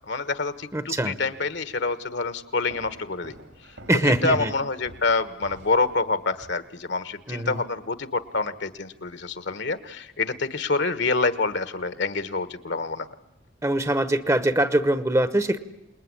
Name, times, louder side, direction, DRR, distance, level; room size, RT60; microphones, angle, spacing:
voice 1, 0.1-3.3 4.0-13.1, left 3 dB, 65° left, 13 dB, 1.4 m, -27 dB
voice 2, 0.7-1.2 3.9-4.5 7.3-7.6 13.6-15.6, right 1 dB, 15° right, 13 dB, 1.0 m, -23 dB
sound 1, 2.7-6.4, right 1 dB, 80° right, 4.2 m, -48 dB
28.0 x 20.5 x 9.8 m, 0.91 s
head